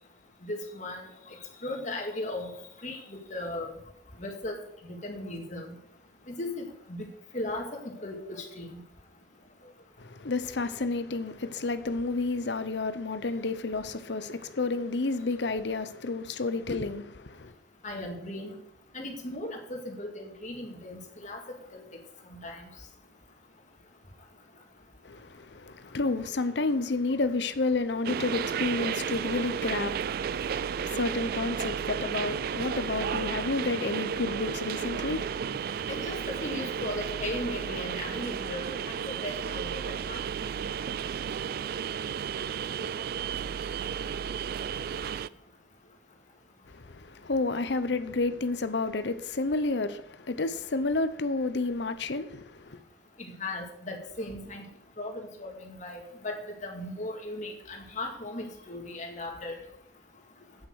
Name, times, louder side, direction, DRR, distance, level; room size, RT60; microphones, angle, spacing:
voice 1, 0.4-1.0 1.6-2.5 2.8-3.7 4.2-4.6 4.8-5.7 6.3-7.1 7.3-8.8 17.8-18.5 18.9-21.4 21.7-21.8 22.3-22.6 35.9-38.7 39.0-39.8 40.1-40.2 53.2-54.6 55.0-56.4 56.6-59.6, left 1 dB, 40° left, 2.3 m, -37 dB
voice 2, 10.0-17.5 25.0-35.8 46.7-52.8, left 3 dB, 65° left, 0.8 m, -31 dB
sound 1, 28.0-45.3, right 7 dB, 55° right, 0.3 m, -33 dB
8.8 x 8.1 x 6.3 m
head